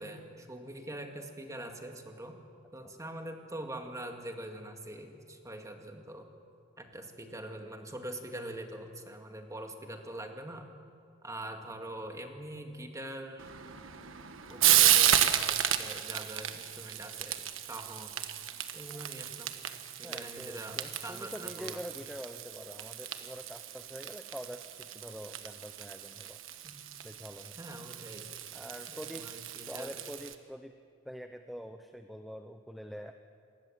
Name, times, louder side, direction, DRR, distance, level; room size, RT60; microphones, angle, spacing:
voice 1, 0.0-2.4 2.7-6.3 6.8-10.7 11.2-13.5 14.5-18.2 18.7-19.6 20.0-21.8 26.6-26.8 27.6-28.3 28.9-30.0, right 1 dB, 15° right, 4 dB, 2.2 m, -43 dB
Frying (food), 13.4-30.3, right 11 dB, 70° right, 1.4 m, -32 dB
voice 2, 20.0-26.4 27.0-27.6 28.5-29.3 29.7-30.7 31.1-33.1, equal, ahead, 6 dB, 0.7 m, -45 dB
27.0 x 20.0 x 7.6 m, 2.4 s
head